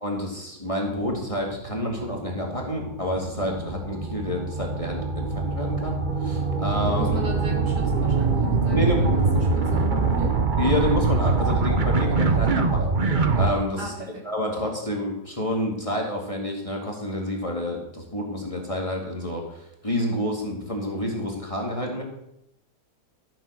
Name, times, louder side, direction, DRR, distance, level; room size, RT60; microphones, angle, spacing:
voice 1, 0.0-7.2 8.7-9.4 10.6-13.0 13.3-13.9 14.2-22.0, left 1 dB, 20° left, -1 dB, 2.1 m, -29 dB
sound 1, 1.0-13.5, right 4 dB, 35° right, 1.0 m, -24 dB
voice 2, 6.9-10.4 13.8-14.2, right 1 dB, 75° right, -2 dB, 3.7 m, -36 dB
13.5 x 7.3 x 6.4 m, 0.79 s
omnidirectional pair, 1.8 m